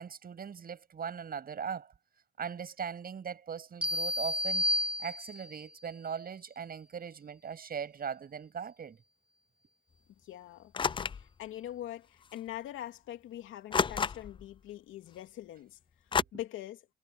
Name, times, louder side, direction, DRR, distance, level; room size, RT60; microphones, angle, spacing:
voice 1, 0.0-1.9 2.4-4.7 5.0-9.0 16.1-16.3, right 7 dB, 50° right, 7.9 m, -40 dB
sound 1, 3.8-5.6, left 1 dB, 5° right, 3.2 m, -31 dB
voice 2, 10.2-10.7 11.1-15.8 16.3-16.9, left 13 dB, 85° left, 2.7 m, -43 dB
sound 2, 10.7-11.3 12.3-12.4 13.7-14.5 16.1-16.2, left 6 dB, 25° left, 0.4 m, -30 dB
cardioid pair, 90°, 20 cm